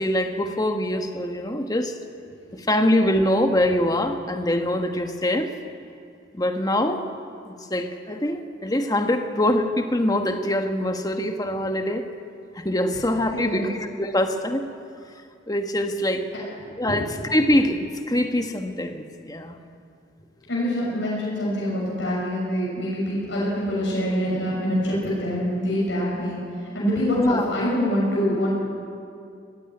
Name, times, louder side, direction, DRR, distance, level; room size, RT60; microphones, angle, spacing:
voice 1, 0.0-1.9 2.5-5.5 6.3-7.1 7.4-12.1 12.5-14.6 15.5-16.3 16.8-19.6 27.2-27.5, left 1 dB, 20° left, 6 dB, 1.3 m, -24 dB
voice 2, 13.3-13.7 16.9-17.0 20.5-26.4 26.7-28.5, equal, 75° left, -6 dB, 6.5 m, -25 dB
19.0 x 16.0 x 9.7 m, 2.4 s
head